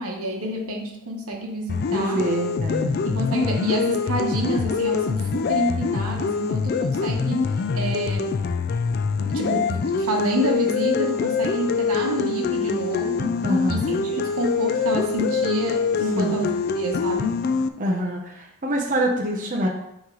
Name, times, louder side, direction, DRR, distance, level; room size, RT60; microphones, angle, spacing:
voice 1, 0.0-2.2 3.0-7.5 7.7-8.4 9.2-13.4 13.7-17.4, right 1 dB, 80° right, 1 dB, 1.1 m, -28 dB
sound 1, 1.7-17.7, left 5 dB, 45° left, 0.3 m, -24 dB
voice 2, 1.9-3.0 13.4-14.0 16.1-16.4 17.8-19.7, equal, 35° right, -2 dB, 0.8 m, -25 dB
8.7 x 3.1 x 3.8 m, 0.81 s
head